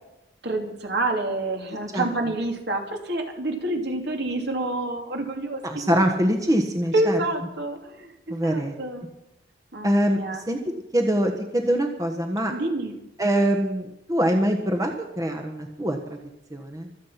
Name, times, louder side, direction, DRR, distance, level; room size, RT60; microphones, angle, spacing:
voice 1, 0.4-5.8 6.9-9.0 9.7-10.4 12.5-12.9, right 2 dB, 60° right, 3 dB, 2.9 m, -28 dB
voice 2, 5.6-7.2 8.3-8.7 9.8-10.6 10.9-12.5 13.2-16.2 16.5-16.9, equal, 20° right, 4 dB, 1.4 m, -24 dB
25.5 x 8.7 x 5.8 m, 0.89 s
head